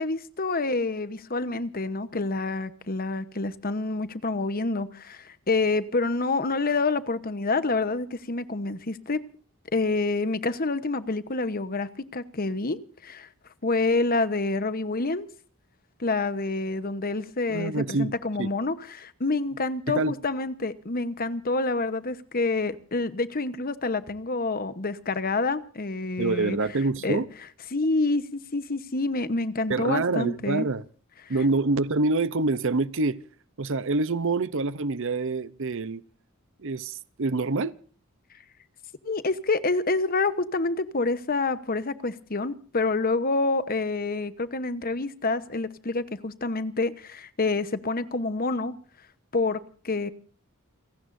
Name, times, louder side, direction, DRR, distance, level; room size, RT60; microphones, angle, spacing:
voice 1, 0.0-9.2 9.7-13.3 13.6-15.3 16.0-26.6 27.0-27.2 27.7-30.7 31.2-31.4 39.0-48.7 49.3-50.1, left 3 dB, 40° left, 1.1 m, -27 dB
voice 2, 17.5-18.5 19.9-20.1 26.2-27.3 29.7-30.8 31.3-33.2 33.6-36.0 36.6-37.7, right 3 dB, 60° right, 0.7 m, -26 dB
29.5 x 17.5 x 2.7 m
head